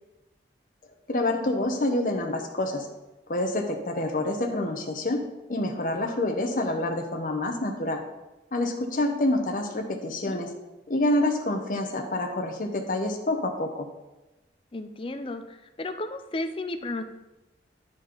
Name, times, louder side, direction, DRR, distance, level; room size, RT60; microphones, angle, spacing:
voice 1, 1.1-2.9 3.3-5.2 5.5-8.0 8.5-10.5 10.9-13.9, left 1 dB, 50° left, 3 dB, 0.9 m, -27 dB
voice 2, 14.7-17.0, left 2 dB, 30° left, 8 dB, 0.5 m, -33 dB
9.7 x 4.2 x 5.0 m, 1.0 s
head